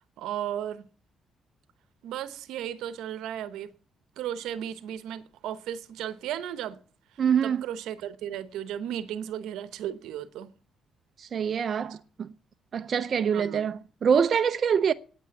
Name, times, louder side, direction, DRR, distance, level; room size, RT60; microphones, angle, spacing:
voice 1, 0.2-0.9 2.0-3.7 4.2-6.8 7.4-10.5 11.9-12.0 13.3-13.7, right 10 dB, 90° right, 0.9 m, -35 dB
voice 2, 7.2-7.6 11.2-12.3 12.7-14.9, right 7 dB, 50° right, 0.5 m, -25 dB
9.3 x 8.6 x 8.4 m
cardioid pair, 90°, 0 cm